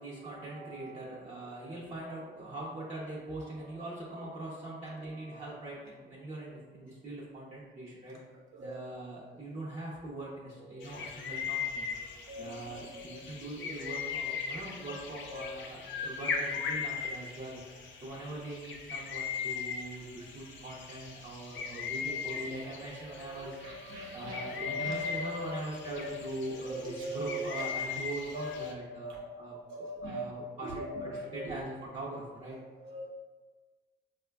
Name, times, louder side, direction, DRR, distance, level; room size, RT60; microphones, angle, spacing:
voice 1, 0.0-8.2 8.6-11.9 12.4-17.6 18.0-23.6 24.1-32.6, right 2 dB, 35° right, -7 dB, 0.6 m, -42 dB
sound 1, 10.8-28.7, left 6 dB, 70° left, 0.5 m, -39 dB
voice 2, 12.0-12.6 12.9-13.1 13.6-13.9 15.2-15.5 22.1-25.6 25.8-27.7 28.0-28.1 28.3-29.2 29.5-30.2 30.6-31.6 32.8-33.1, equal, 80° right, -3 dB, 0.9 m, -41 dB
4.3 x 2.2 x 2.2 m, 1.3 s
cardioid pair, 90°, 20 cm